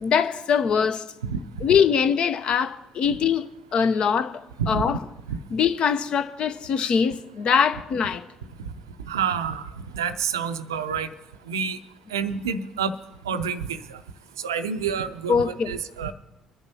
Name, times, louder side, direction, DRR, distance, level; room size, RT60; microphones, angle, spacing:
voice 1, 0.0-1.1 1.6-3.5 3.7-4.4 4.7-5.0 5.5-8.2 15.3-15.7, left 7 dB, 50° left, 0.6 m, -22 dB
voice 2, 1.2-1.7 4.6-5.0 5.3-5.4 8.6-8.7 9.1-11.1 11.5-11.8 12.1-12.9 13.2-14.0 14.4-16.1, right 6 dB, 85° right, 0.5 m, -28 dB
22.5 x 11.0 x 2.8 m
figure-of-eight pair, 50°, 2 cm